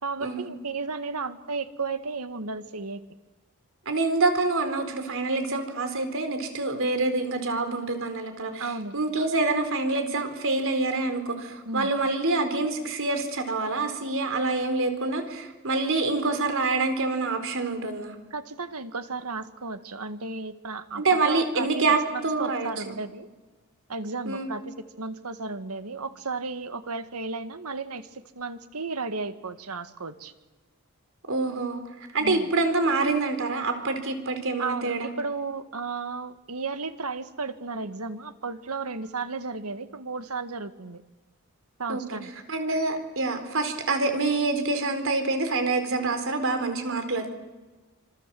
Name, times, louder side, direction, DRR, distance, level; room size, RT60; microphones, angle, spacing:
voice 1, 0.0-3.0 8.6-9.0 11.7-11.9 18.3-21.8 22.1-23.3 23.9-30.3 32.2-32.5 34.6-41.0 41.8-42.3, right 4 dB, 85° right, 10 dB, 1.8 m, -34 dB
voice 2, 3.9-8.7 8.9-18.2 21.0-23.0 24.2-24.5 31.3-31.8 32.1-35.1 41.9-42.0 42.5-47.3, right 3 dB, 65° right, 8 dB, 4.3 m, -26 dB
26.5 x 26.0 x 7.8 m, 1.3 s
head